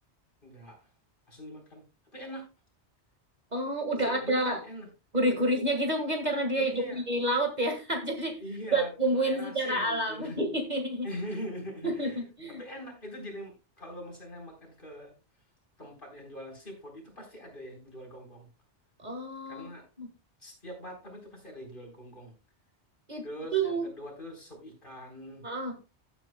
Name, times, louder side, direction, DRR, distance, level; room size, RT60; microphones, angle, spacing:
voice 1, 0.4-0.9 1.3-1.8 2.1-2.5 4.0-4.9 6.5-7.0 8.4-10.4 11.0-12.2 12.5-15.2 15.8-18.5 19.5-19.9 20.4-22.3 23.2-25.4, equal, 45° left, 1 dB, 4.4 m, -42 dB
voice 2, 3.5-4.6 5.1-8.4 8.7-11.1 11.8-12.1 12.4-12.6 19.0-19.7 20.0-20.1 23.1-23.2 23.5-23.9 25.4-25.7, right 1 dB, 35° right, 3 dB, 1.9 m, -29 dB
15.5 x 8.5 x 2.2 m, 0.28 s
omnidirectional pair, 1.2 m